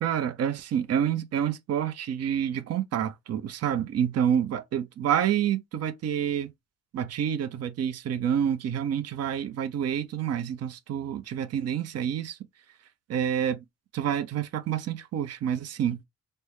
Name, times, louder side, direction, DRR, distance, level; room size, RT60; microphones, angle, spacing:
voice 1, 0.0-6.5 6.9-12.4 13.1-13.6 13.9-16.0, right 9 dB, 55° right, 0.6 m, -28 dB
3.4 x 2.1 x 3.0 m
cardioid pair, 90°, 30 cm